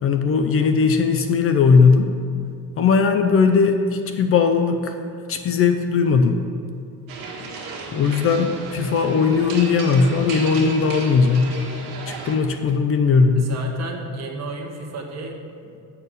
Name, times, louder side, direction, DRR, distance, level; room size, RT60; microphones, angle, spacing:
voice 1, 0.0-2.1 2.8-4.9 5.3-6.4 7.9-11.6 12.1-13.6, left 5 dB, 40° left, 7 dB, 0.5 m, -18 dB
sound 1, 7.1-12.4, right 4 dB, 70° right, 1.7 m, -34 dB
voice 2, 13.4-15.8, right 3 dB, 45° right, 1 dB, 1.2 m, -33 dB
8.7 x 4.4 x 6.6 m, 2.6 s
cardioid pair, 145°, 36 cm